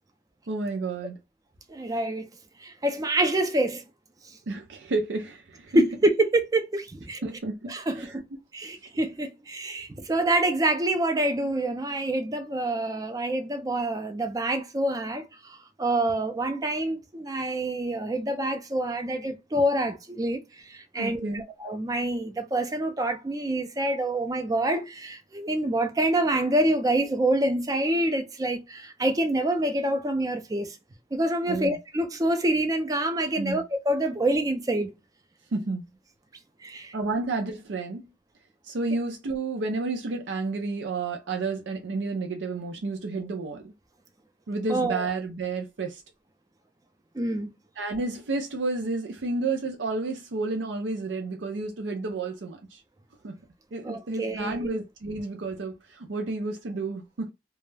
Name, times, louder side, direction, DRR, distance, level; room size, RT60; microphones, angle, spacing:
voice 1, 0.5-1.2 4.5-5.8 7.2-8.2 21.0-21.4 31.5-31.8 33.4-33.6 35.5-35.8 36.9-38.0 38.6-43.7 44.5-46.0 47.8-52.8 53.2-53.4 53.7-57.3, right 3 dB, 80° right, 0.5 m, -31 dB
voice 2, 1.7-2.3 2.6-3.8 5.7-7.2 7.7-8.2 8.5-30.8 31.1-34.9 36.6-36.9 44.7-45.1 47.1-47.5 53.8-54.8, right 1 dB, 20° right, 0.4 m, -26 dB
2.2 x 2.0 x 3.1 m
head